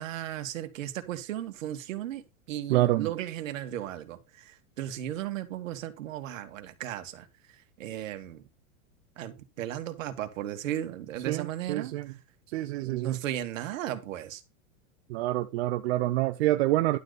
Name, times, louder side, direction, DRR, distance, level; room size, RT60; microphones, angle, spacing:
voice 1, 0.0-2.2 2.5-8.4 9.2-12.2 12.8-14.4, right 12 dB, 70° right, 1.9 m, -36 dB
voice 2, 2.7-3.1 11.3-12.1 12.5-13.2 15.1-17.0, right 16 dB, 50° right, 0.7 m, -27 dB
11.5 x 4.0 x 6.8 m
supercardioid pair, 155°, 40 cm